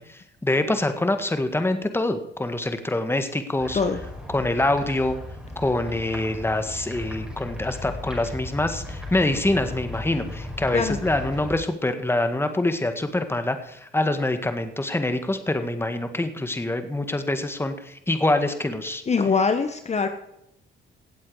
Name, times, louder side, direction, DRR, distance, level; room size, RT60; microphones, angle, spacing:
voice 1, 0.1-3.8 4.3-5.2 5.6-19.0, left 2 dB, 10° left, 9 dB, 1.7 m, -25 dB
sound 1, 3.6-11.6, left 2 dB, 5° right, 5.0 m, -36 dB
voice 2, 19.1-20.1, left 5 dB, 35° left, 8 dB, 1.3 m, -22 dB
17.0 x 8.0 x 4.9 m, 0.80 s
cardioid pair, 90°, 20 cm